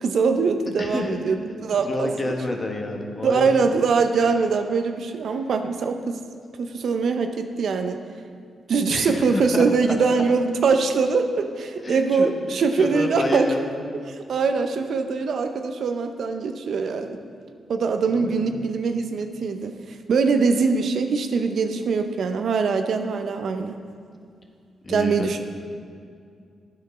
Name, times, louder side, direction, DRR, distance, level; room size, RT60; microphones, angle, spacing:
voice 1, 0.0-2.3 3.2-6.2 6.6-8.0 8.7-13.5 14.1-17.2 17.7-19.7 20.1-23.8 24.9-25.4, right 4 dB, 70° right, 7 dB, 0.5 m, -23 dB
voice 2, 0.8-1.2 1.7-3.7 8.9-9.7 11.8-12.3 12.5-13.6 18.1-18.7 24.8-25.3, left 2 dB, 35° left, 2 dB, 1.3 m, -29 dB
8.9 x 5.8 x 4.8 m, 2.3 s
supercardioid pair, 55°, 0 cm